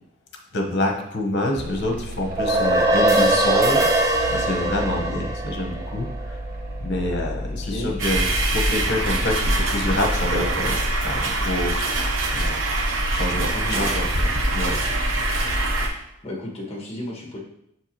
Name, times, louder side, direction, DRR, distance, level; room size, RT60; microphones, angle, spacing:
voice 1, 0.5-6.4 6.8-8.3 8.5-12.0 12.3-12.6 13.1-14.8, left 1 dB, 55° left, 2 dB, 1.1 m, -27 dB
sound 1, 1.6-10.7, equal, 45° right, 1.0 m, -34 dB
sound 2, 2.2-6.8, right 1 dB, 15° right, 0.6 m, -21 dB
voice 2, 7.6-8.0 13.3-13.8 16.2-17.4, left 1 dB, 30° left, -2 dB, 1.4 m, -32 dB
sound 3, 8.0-15.9, right 2 dB, 75° right, 0.9 m, -23 dB
6.9 x 4.6 x 3.0 m, 0.75 s
head